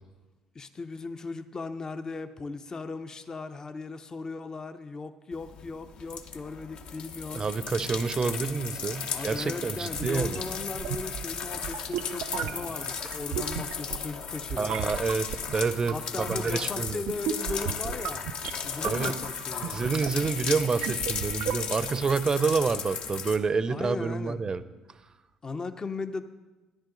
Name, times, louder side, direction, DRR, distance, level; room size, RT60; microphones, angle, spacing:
voice 1, 0.5-7.4 9.1-14.8 15.7-18.3 18.6-19.7 23.7-24.4 25.4-26.2, left 3 dB, 30° left, 8 dB, 0.7 m, -37 dB
sound 1, 5.3-23.4, left 6 dB, 60° left, 0.9 m, -36 dB
voice 2, 7.3-10.4 14.6-15.3 15.5-17.0 18.8-19.1 19.6-24.6, right 5 dB, 35° right, 14 dB, 0.7 m, -28 dB
sound 2, 10.0-22.0, right 10 dB, 75° right, 0.4 m, -36 dB
12.5 x 10.5 x 3.9 m, 1.2 s
supercardioid pair, 70°, 2 cm